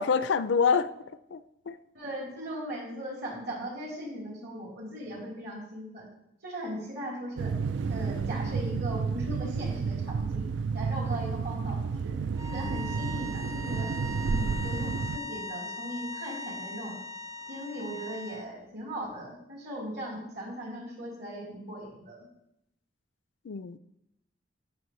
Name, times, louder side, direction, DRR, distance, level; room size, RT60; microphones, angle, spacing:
voice 1, 0.0-1.8 12.6-12.8 23.4-23.8, left 5 dB, 70° left, 14 dB, 0.4 m, -27 dB
voice 2, 1.9-6.1 6.4-7.5 7.9-10.5 10.7-13.9 14.2-17.0 17.5-22.3, equal, 55° right, -4 dB, 3.7 m, -38 dB
sound 1, 7.4-15.2, right 5 dB, 75° right, 0.4 m, -31 dB
sound 2, 12.3-18.5, left 1 dB, 20° right, 0.5 m, -40 dB
15.5 x 6.1 x 3.2 m, 0.81 s
head